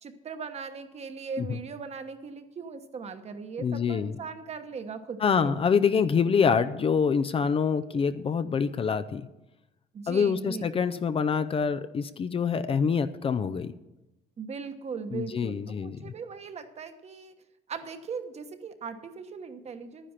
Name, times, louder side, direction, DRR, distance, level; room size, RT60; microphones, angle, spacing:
voice 1, 0.0-5.5 7.9-8.0 9.9-10.6 14.4-17.3 17.7-20.1, right 5 dB, 40° right, 8 dB, 1.2 m, -39 dB
voice 2, 3.6-4.2 5.2-9.3 10.1-13.7 15.1-16.1, left 6 dB, 35° left, 12 dB, 0.5 m, -26 dB
11.0 x 10.0 x 5.8 m, 0.97 s
cardioid pair, 110°, 17 cm